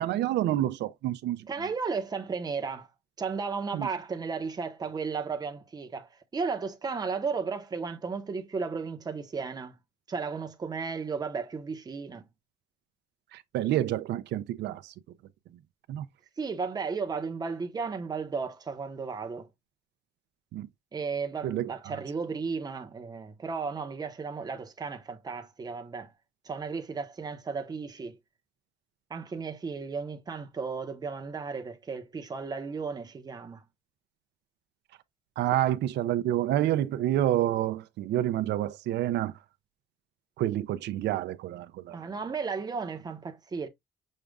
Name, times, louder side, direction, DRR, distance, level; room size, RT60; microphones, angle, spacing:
voice 1, 0.0-1.5 3.7-3.9 13.3-14.9 15.9-16.1 20.5-20.7 21.4-22.0 35.4-39.3 40.4-42.0, right 13 dB, 90° right, 0.5 m, -28 dB
voice 2, 1.5-2.9 3.2-9.8 10.1-12.2 16.4-19.5 20.9-26.1 26.4-28.2 29.1-33.6 41.9-43.7, right 5 dB, 20° right, 0.8 m, -34 dB
6.4 x 2.4 x 3.3 m
cardioid pair, 155°, 17 cm